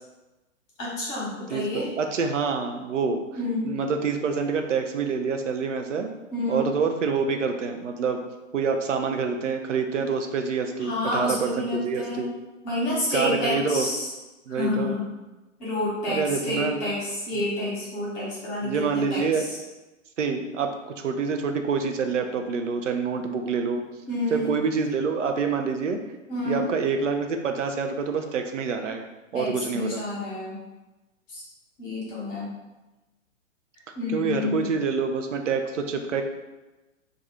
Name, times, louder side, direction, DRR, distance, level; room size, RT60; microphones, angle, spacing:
voice 1, 0.8-1.9 3.3-3.8 6.3-6.7 10.8-12.2 12.6-14.1 14.5-15.1 15.6-19.6 24.1-24.5 26.3-26.6 29.3-30.6 31.3-31.4 31.8-32.5 33.9-34.7, left 1 dB, 25° left, -6 dB, 1.1 m, -29 dB
voice 2, 1.5-3.2 3.7-6.1 6.5-8.2 8.5-12.3 13.1-13.9 14.5-15.0 16.1-16.8 18.6-19.4 20.2-23.8 24.3-26.0 26.5-29.1 29.3-30.0 34.1-36.2, right 5 dB, 65° right, 5 dB, 0.5 m, -26 dB
2.5 x 2.3 x 4.0 m, 1.1 s
figure-of-eight pair, 115°, 39 cm